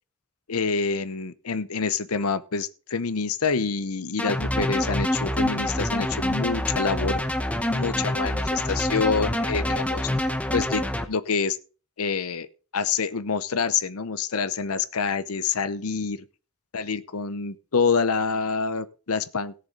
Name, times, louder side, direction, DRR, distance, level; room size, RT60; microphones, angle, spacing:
voice 1, 0.5-7.2 7.7-10.1 10.5-10.8 11.1-11.6 12.0-12.5 12.7-16.2 16.7-19.5, left 5 dB, 80° left, 0.8 m, -27 dB
sound 1, 4.2-11.1, left 1 dB, 5° left, 1.0 m, -26 dB
17.5 x 6.9 x 3.8 m
head